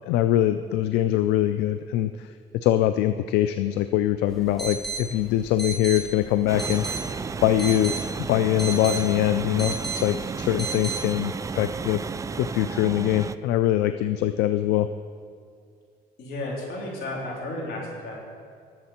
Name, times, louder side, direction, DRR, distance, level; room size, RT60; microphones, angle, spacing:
voice 1, 0.1-7.1 7.4-8.0 8.3-12.0 12.4-14.9, left 12 dB, 90° left, 11 dB, 0.4 m, -23 dB
sound 1, 4.3-11.0, right 3 dB, ahead, 1.6 m, -35 dB
sound 2, 6.5-13.4, right 5 dB, 20° right, 0.3 m, -33 dB
voice 2, 16.2-18.3, left 1 dB, 70° left, -3 dB, 3.7 m, -33 dB
19.5 x 7.4 x 4.4 m, 2.2 s
cardioid pair, 110°, 17 cm